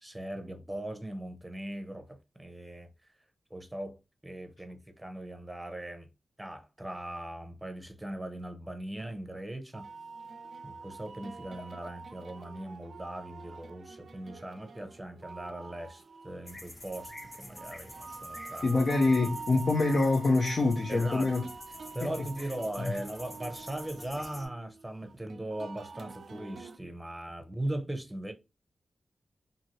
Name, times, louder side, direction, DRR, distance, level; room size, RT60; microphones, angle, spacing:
voice 1, 0.0-2.9 3.5-4.0 4.2-6.1 6.4-9.9 10.6-17.1 17.4-18.7 20.9-21.3 21.9-28.3, right 1 dB, 10° right, 0.7 m, -39 dB
sound 1, 9.7-26.8, right 4 dB, 65° right, 0.4 m, -46 dB
sound 2, 16.5-24.5, left 1 dB, 35° left, 0.9 m, -48 dB
voice 2, 18.6-21.4 22.0-22.1 22.8-23.0, left 3 dB, 60° left, 0.5 m, -25 dB
2.8 x 2.6 x 2.9 m
cardioid pair, 75°, 0 cm